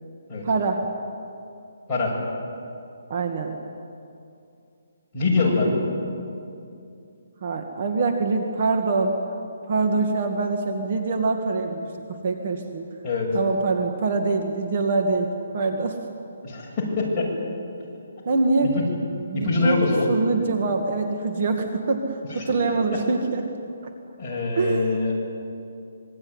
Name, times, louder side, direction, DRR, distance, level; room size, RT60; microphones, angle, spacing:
voice 1, 0.4-0.9 3.1-3.6 7.4-9.2 9.7-12.8 13.3-16.0 18.3-18.7 19.3-23.5 23.8-23.9 24.6-24.9, right 3 dB, 40° right, 4 dB, 2.0 m, -24 dB
voice 2, 5.1-5.8 13.0-13.3 16.4-17.3 19.3-20.1 22.3-22.5 24.2-25.2, left 3 dB, 15° left, -7 dB, 7.4 m, -23 dB
26.0 x 22.5 x 9.8 m, 2.6 s
hypercardioid pair, 175°, 0 cm